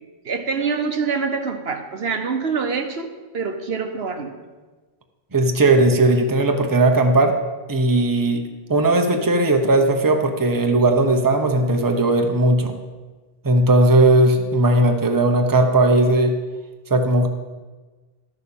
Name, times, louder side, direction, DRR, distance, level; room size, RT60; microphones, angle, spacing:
voice 1, 0.0-3.1 3.3-4.3, right 5 dB, 75° right, 6 dB, 1.2 m, -25 dB
voice 2, 5.3-7.4 7.7-8.4 8.7-12.7 13.4-16.3 16.9-17.3, right 2 dB, 20° right, 4 dB, 0.9 m, -17 dB
12.0 x 6.8 x 7.0 m, 1.3 s
omnidirectional pair, 1.0 m